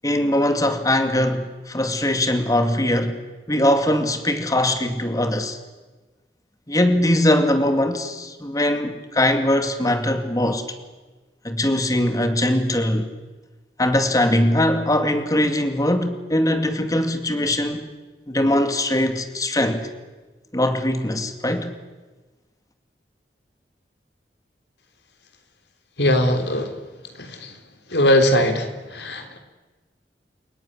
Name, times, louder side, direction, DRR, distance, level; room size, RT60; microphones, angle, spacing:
voice 1, 0.0-3.2 3.5-5.6 6.7-10.7 11.4-13.1 13.8-17.9 18.3-19.9 20.5-21.7, left 1 dB, 20° left, 2.4 m, -21 dB
voice 2, 26.0-26.7 27.2-27.5 27.9-29.4, left 1 dB, 75° left, 3.7 m, -20 dB
29.5 x 18.0 x 9.9 m
head